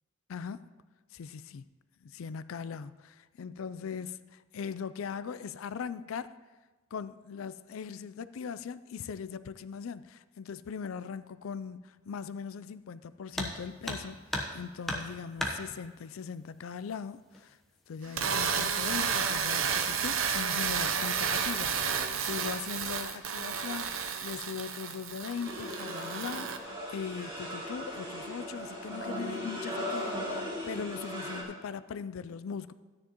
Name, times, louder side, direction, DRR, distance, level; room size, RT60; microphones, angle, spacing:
voice 1, 0.3-0.7 1.1-1.6 2.0-6.3 6.9-17.6 17.9-32.7, left 6 dB, 75° left, 0.4 m, -40 dB
sound 1, 13.3-13.6 13.8-14.6 14.8-15.6 16.8-16.9 17.3-17.4 18.2-18.6 18.9-19.3, left 1 dB, ahead, 0.9 m, -34 dB
sound 2, 18.0-26.6, right 6 dB, 70° right, 0.7 m, -31 dB
sound 3, 25.4-31.4, equal, 25° right, 2.5 m, -38 dB
13.5 x 9.8 x 3.0 m
head